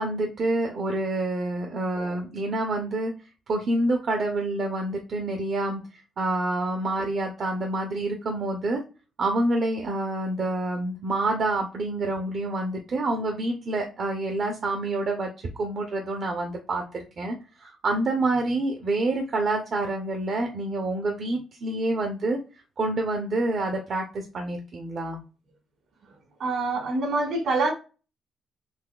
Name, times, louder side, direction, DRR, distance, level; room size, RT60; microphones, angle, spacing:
voice 1, 0.0-3.1 3.5-8.8 9.2-22.4 22.8-25.2, right 2 dB, 55° right, 0.7 m, -27 dB
voice 2, 26.4-27.7, right 3 dB, 70° right, 1.6 m, -25 dB
4.1 x 2.7 x 2.3 m
cardioid pair, 90°, 0 cm